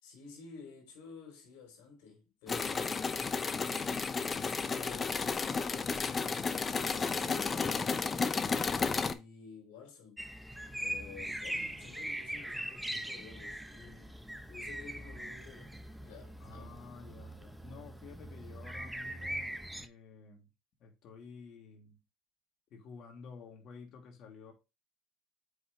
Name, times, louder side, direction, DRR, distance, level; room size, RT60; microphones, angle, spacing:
voice 1, 0.0-4.0 4.3-6.0 6.5-10.3 10.8-14.1 14.5-15.7 16.0-16.8, left 5 dB, 75° left, 3.4 m, -52 dB
sound 1, 2.5-9.1, left 5 dB, 30° left, 0.8 m, -32 dB
sound 2, 10.2-19.9, right 1 dB, 5° right, 0.9 m, -41 dB
voice 2, 16.4-20.5 20.8-22.0 22.7-24.5, left 5 dB, 55° left, 2.8 m, -52 dB
7.8 x 6.0 x 3.3 m
supercardioid pair, 90°, 0 cm